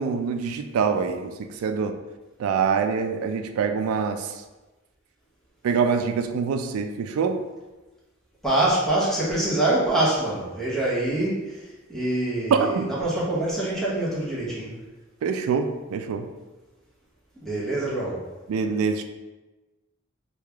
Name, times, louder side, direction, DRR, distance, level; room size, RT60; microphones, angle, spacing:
voice 1, 0.0-2.0 2.4-4.4 5.6-7.4 12.5-12.9 15.2-16.3 18.5-19.0, right 5 dB, 90° right, 9 dB, 0.3 m, -25 dB
voice 2, 8.4-14.8 17.4-18.2, right 1 dB, ahead, -8 dB, 0.9 m, -25 dB
3.2 x 2.3 x 3.4 m, 1.2 s
head